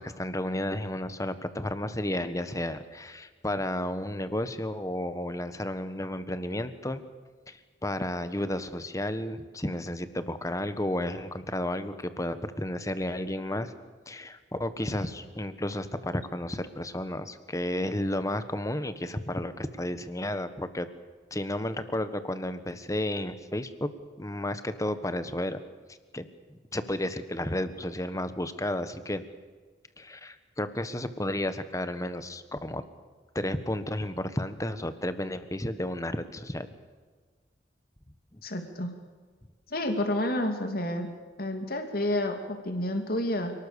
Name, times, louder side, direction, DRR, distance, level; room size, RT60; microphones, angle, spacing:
voice 1, 0.0-7.0 7.5-13.7 14.1-20.9 21.3-23.9 24.2-25.6 26.1-29.2 30.0-32.8 33.3-36.7 38.3-38.4, left 1 dB, 20° left, 11 dB, 1.4 m, -32 dB
voice 2, 38.4-38.9 39.7-41.1 41.4-43.5, left 1 dB, 55° left, 5 dB, 2.8 m, -29 dB
28.5 x 19.0 x 7.1 m, 1.5 s
head